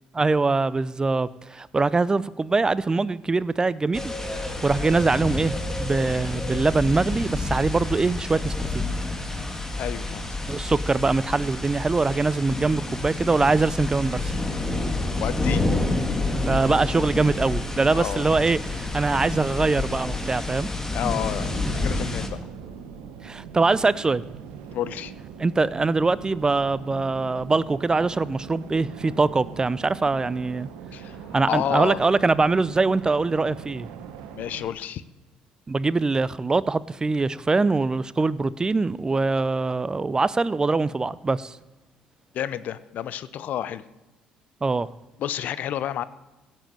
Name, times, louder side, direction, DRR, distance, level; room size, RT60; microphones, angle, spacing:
voice 1, 0.1-8.8 10.5-14.3 16.4-20.7 23.2-24.2 25.4-30.7 31.3-33.9 35.7-41.6 44.6-44.9, right 3 dB, 25° right, 19 dB, 0.5 m, -23 dB
sound 1, 3.9-22.3, left 2 dB, 15° left, 2.2 m, -29 dB
voice 2, 9.8-10.2 15.2-15.6 17.9-18.3 20.9-22.5 24.7-25.1 30.9-32.0 34.3-35.0 42.3-43.8 45.2-46.0, left 10 dB, 60° left, 16 dB, 0.7 m, -30 dB
sound 2, 21.3-34.7, right 7 dB, 70° right, 1.2 m, -41 dB
16.0 x 7.6 x 7.5 m, 1.1 s
hypercardioid pair, 55°, 3 cm